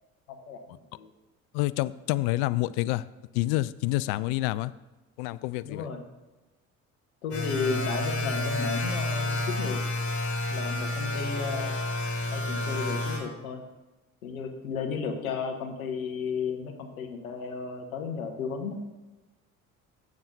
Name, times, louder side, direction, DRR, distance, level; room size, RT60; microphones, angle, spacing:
voice 1, 0.3-1.1 5.6-6.0 7.2-9.8 10.5-11.7 12.3-13.6 14.2-18.8, left 5 dB, 80° left, 4 dB, 1.1 m, -34 dB
voice 2, 1.5-3.0 3.3-4.7 5.2-5.9, left 18 dB, 60° left, 17 dB, 0.5 m, -28 dB
sound 1, 7.3-13.2, left 2 dB, 35° left, 3.3 m, -30 dB
15.5 x 7.2 x 2.7 m, 1.1 s
hypercardioid pair, 55°, 42 cm